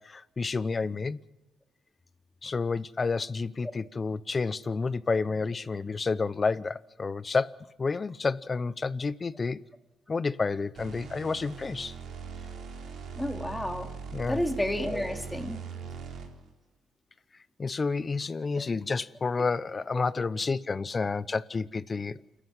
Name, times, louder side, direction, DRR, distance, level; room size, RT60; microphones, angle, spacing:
voice 1, 0.0-1.2 2.4-7.5 7.8-9.6 10.1-11.9 14.1-14.4 17.6-22.2, left 4 dB, 30° left, 0.7 m, -30 dB
sound 1, 10.8-16.5, right 6 dB, 70° right, 4.0 m, -41 dB
voice 2, 13.2-13.9 14.3-15.6 18.5-18.6 19.9-20.0, left 1 dB, 10° left, 2.5 m, -31 dB
29.0 x 13.5 x 7.3 m
cardioid pair, 90°, 0 cm